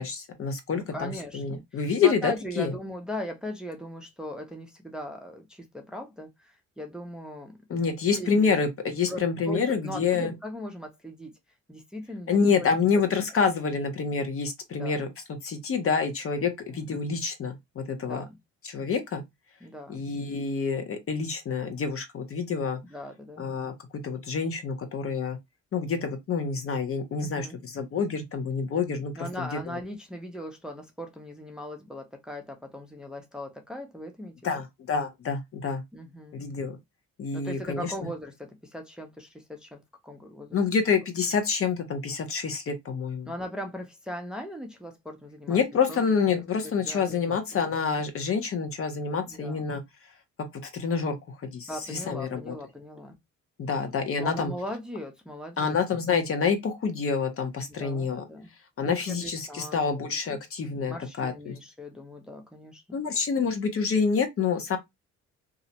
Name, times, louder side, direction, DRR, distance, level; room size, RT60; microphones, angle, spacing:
voice 1, 0.0-2.7 7.7-10.3 12.3-15.1 15.4-18.2 18.6-19.2 19.9-22.8 23.4-23.7 24.0-25.4 25.7-29.8 34.4-35.8 36.3-36.8 37.2-38.1 40.5-43.3 45.5-49.8 50.6-52.5 53.6-54.5 55.6-58.3 58.8-61.5 62.9-64.8, left 5 dB, 50° left, 0.7 m, -27 dB
voice 2, 0.8-7.6 7.9-8.5 9.1-11.3 11.7-12.7 13.0-13.1 14.7-15.0 16.4-16.8 18.0-18.4 19.6-20.0 22.9-23.4 27.2-27.6 29.2-34.6 35.9-36.4 37.3-40.6 43.3-45.6 45.9-46.0 46.3-47.4 49.2-49.6 51.7-53.1 54.2-55.8 57.7-58.5 58.8-60.0 60.3-60.4 60.9-63.0, equal, 5° right, 0.5 m, -39 dB
2.4 x 2.0 x 2.8 m
cardioid pair, 90°, 30 cm